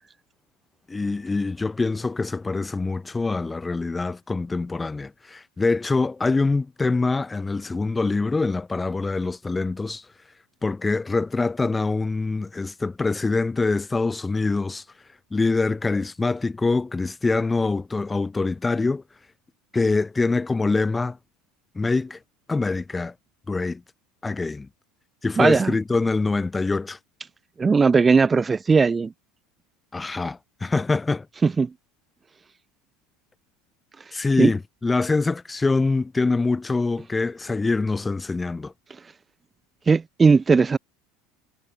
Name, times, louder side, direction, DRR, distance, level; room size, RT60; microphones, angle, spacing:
voice 1, 0.9-10.0 10.6-14.8 15.3-19.0 19.7-21.2 21.8-22.2 22.5-23.1 23.5-23.8 24.2-24.7 25.2-27.0 29.9-31.3 34.1-38.7, left 3 dB, 15° left, 2.0 m, -24 dB
voice 2, 25.4-25.8 27.6-29.1 31.4-31.7 34.4-34.5 39.9-40.8, right 4 dB, 20° right, 0.8 m, -18 dB
hypercardioid pair, 90°, 0 cm